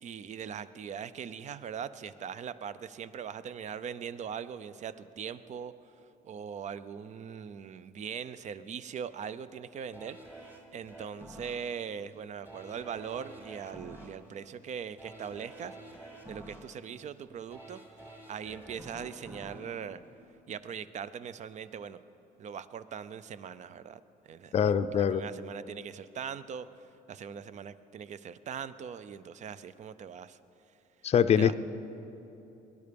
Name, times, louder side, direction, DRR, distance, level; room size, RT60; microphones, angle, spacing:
voice 1, 0.0-5.7 6.2-17.8 18.3-20.0 20.5-22.0 22.4-24.0 24.3-24.7 25.1-26.7 27.1-30.4 31.4-31.6, right 7 dB, 45° right, 15 dB, 0.6 m, -41 dB
sound 1, 9.9-20.9 21.3-21.4, right 1 dB, 10° right, 2.0 m, -50 dB
voice 2, 24.5-25.2 31.0-31.6, left 8 dB, 40° left, 11 dB, 0.5 m, -24 dB
20.5 x 11.0 x 5.3 m, 3.0 s
cardioid pair, 110°, 17 cm